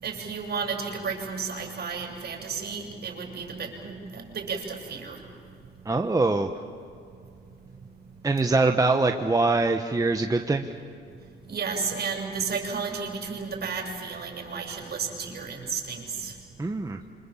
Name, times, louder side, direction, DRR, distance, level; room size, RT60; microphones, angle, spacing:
voice 1, 0.0-5.2 11.5-16.3, right 5 dB, 55° right, 1 dB, 7.1 m, -33 dB
voice 2, 5.8-6.5 8.2-10.6 16.6-17.0, right 3 dB, 15° right, 4 dB, 1.3 m, -23 dB
27.5 x 26.0 x 7.4 m, 2.4 s
cardioid pair, 90°, 20 cm